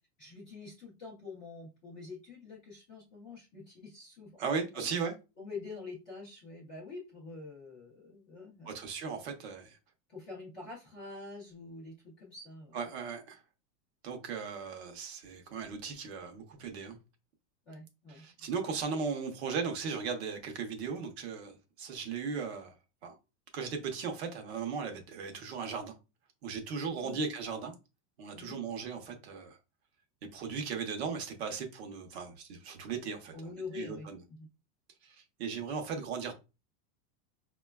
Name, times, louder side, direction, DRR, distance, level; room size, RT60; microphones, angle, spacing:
voice 1, 0.2-4.9 5.4-8.8 10.1-12.8 17.7-18.2 27.0-27.2 28.3-28.6 33.3-34.5, left 3 dB, 15° left, 0.4 m, -46 dB
voice 2, 4.4-5.1 8.7-9.8 12.7-13.4 14.0-17.0 18.1-22.7 23.0-23.1 23.5-26.0 26.4-27.7 28.2-29.6 30.3-33.3 33.7-34.2 35.0-36.3, right 5 dB, 40° right, 0.7 m, -37 dB
4.7 x 2.2 x 2.2 m
supercardioid pair, 165°, 48 cm